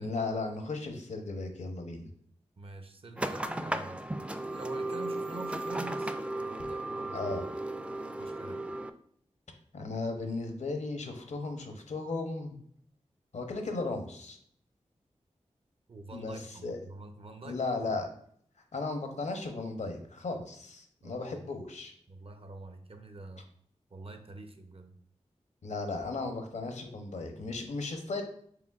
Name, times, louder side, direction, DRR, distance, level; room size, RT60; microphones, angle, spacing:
voice 1, 0.0-2.1 7.1-7.4 9.7-12.6 13.3-14.4 16.1-16.3 16.6-16.8 17.4-18.1 18.7-21.9 25.6-28.2, left 3 dB, 75° left, 5 dB, 0.8 m, -35 dB
voice 2, 2.6-4.0 4.5-6.1 6.5-7.2 8.2-8.6 15.9-18.0 21.0-21.3 22.1-23.4 23.9-24.9, right 2 dB, 50° right, 6 dB, 0.7 m, -46 dB
sound 1, 3.2-8.9, right 1 dB, 10° right, 0.3 m, -35 dB
4.9 x 3.3 x 2.4 m, 0.63 s
cardioid pair, 45°, 12 cm